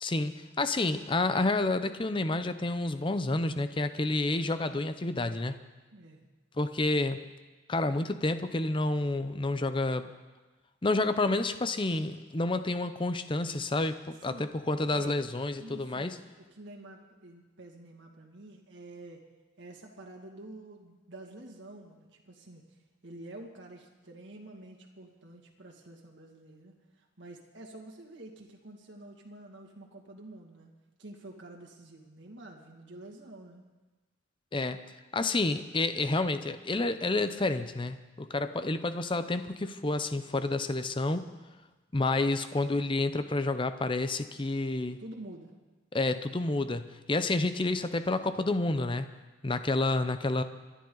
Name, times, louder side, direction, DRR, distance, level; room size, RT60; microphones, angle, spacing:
voice 1, 0.0-5.6 6.6-7.2 7.7-10.1 10.8-16.2 34.5-34.8 35.1-41.3 41.9-45.0 45.9-49.1 49.4-50.4, left 2 dB, 25° left, 11 dB, 0.6 m, -29 dB
voice 2, 5.9-6.2 14.2-14.5 14.9-15.2 15.6-19.3 19.6-22.6 23.0-30.7 31.0-33.6 45.0-45.6, right 2 dB, 60° right, 0 dB, 2.3 m, -48 dB
27.0 x 11.0 x 4.0 m, 1.2 s
head